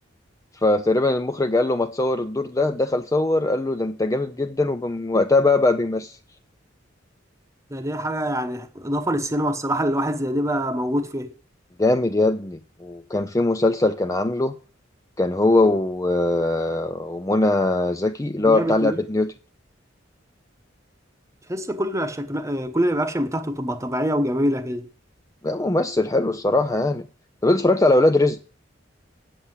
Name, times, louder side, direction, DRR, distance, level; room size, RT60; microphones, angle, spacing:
voice 1, 0.6-6.2 11.8-14.5 15.2-19.3 25.4-27.0 27.4-28.4, left 2 dB, 15° left, 0.5 m, -21 dB
voice 2, 7.7-11.3 18.4-19.0 21.5-24.9, equal, 15° right, 1.0 m, -25 dB
8.2 x 7.7 x 7.9 m
head